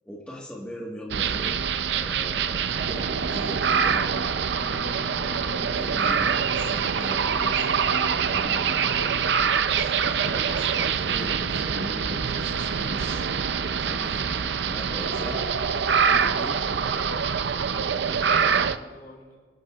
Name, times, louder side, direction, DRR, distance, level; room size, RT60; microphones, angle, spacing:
voice 1, 0.0-1.6 1.9-4.4 5.0-8.8 9.7-13.2 13.8-17.2, equal, 5° left, -4 dB, 1.5 m, -39 dB
sound 1, 1.1-18.8, right 6 dB, 70° right, 0.5 m, -25 dB
sound 2, 4.5-9.7, left 2 dB, 80° left, 2.8 m, -47 dB
voice 2, 7.5-8.1 9.0-9.4 17.9-19.4, left 1 dB, 55° left, -2 dB, 4.7 m, -46 dB
24.5 x 12.5 x 2.4 m, 1.5 s
head